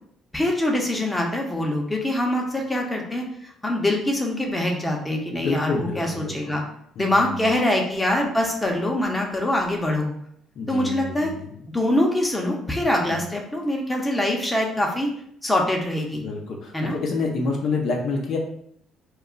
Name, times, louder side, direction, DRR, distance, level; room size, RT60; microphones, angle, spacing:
voice 1, 0.3-6.6 7.0-10.1 10.7-11.3 11.7-15.1 15.4-16.2 16.7-17.0, left 1 dB, 15° left, 0 dB, 0.7 m, -24 dB
voice 2, 5.4-6.6 7.0-7.5 10.6-11.6 13.1-13.2 16.2-18.4, left 3 dB, 60° left, 0 dB, 0.5 m, -28 dB
2.3 x 2.0 x 3.7 m, 0.68 s
supercardioid pair, 65°, 0 cm